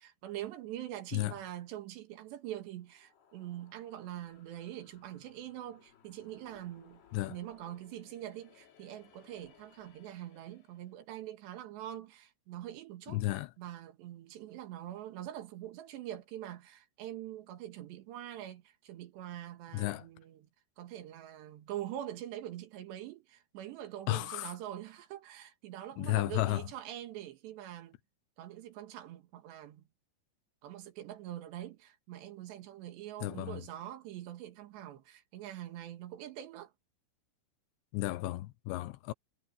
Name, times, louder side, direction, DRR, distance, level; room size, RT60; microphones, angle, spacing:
voice 1, 0.0-7.0 7.3-13.2 13.6-20.5 20.8-28.0 28.4-29.8 30.6-36.7, right 12 dB, 80° right, 3.8 m, -44 dB
sound 1, 2.7-11.0, left 9 dB, 70° left, 4.7 m, -64 dB
voice 2, 13.1-13.5 19.7-20.1 24.1-24.5 26.0-26.7 33.2-33.6 37.9-39.1, left 17 dB, 85° left, 3.2 m, -33 dB
omnidirectional pair, 5.0 m